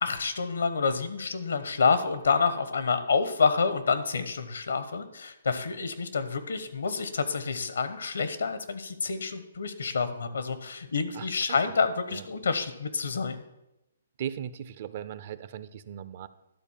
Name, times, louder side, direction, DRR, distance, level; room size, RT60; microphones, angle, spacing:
voice 1, 0.0-13.4, left 5 dB, 85° left, 11 dB, 1.1 m, -28 dB
voice 2, 14.2-16.3, right 9 dB, 45° right, 14 dB, 0.5 m, -37 dB
11.5 x 4.1 x 7.3 m, 0.92 s
hypercardioid pair, 150°, 0 cm